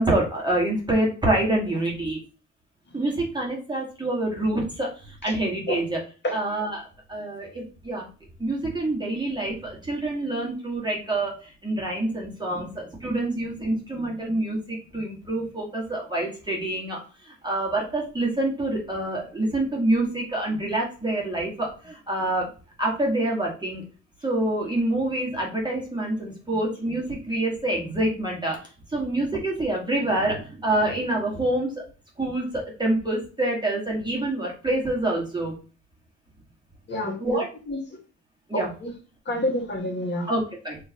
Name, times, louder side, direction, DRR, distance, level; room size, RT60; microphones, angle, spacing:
voice 1, 0.0-2.2 2.9-6.0 6.3-8.1 8.4-22.5 22.8-23.9 24.2-28.6 28.9-31.8 32.2-35.5 37.2-37.5 38.5-38.7 40.3-40.8, right 1 dB, 15° right, -2 dB, 1.8 m, -26 dB
voice 2, 36.9-37.4 37.7-37.8 38.5-38.9 39.2-40.3, left 1 dB, 35° left, -2 dB, 1.7 m, -28 dB
4.6 x 3.2 x 2.9 m, 0.35 s
cardioid pair, 90°, 30 cm